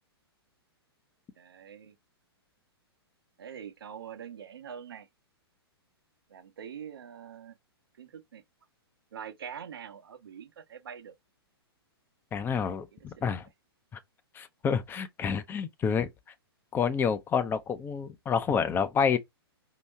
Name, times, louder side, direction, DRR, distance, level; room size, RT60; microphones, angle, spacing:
voice 1, 1.4-2.0 3.4-5.1 6.3-7.6 7.9-8.4 9.1-11.1 12.6-13.4, right 8 dB, 60° right, 1.1 m, -44 dB
voice 2, 12.3-13.4 14.3-16.1 16.7-19.2, left 6 dB, 15° left, 0.7 m, -28 dB
5.3 x 2.9 x 3.3 m
figure-of-eight pair, 110°, 13 cm